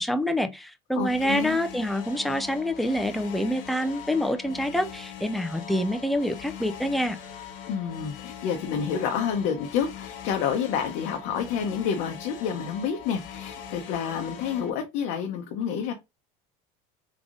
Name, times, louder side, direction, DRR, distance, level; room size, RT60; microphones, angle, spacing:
voice 1, 0.0-7.2, equal, ahead, 0.4 m, -26 dB
sound 1, 1.0-14.7, left 8 dB, 85° left, 1.2 m, -41 dB
voice 2, 1.0-1.6 7.7-15.9, left 7 dB, 65° left, 0.8 m, -29 dB
3.7 x 3.5 x 3.7 m
cardioid pair, 145°, 17 cm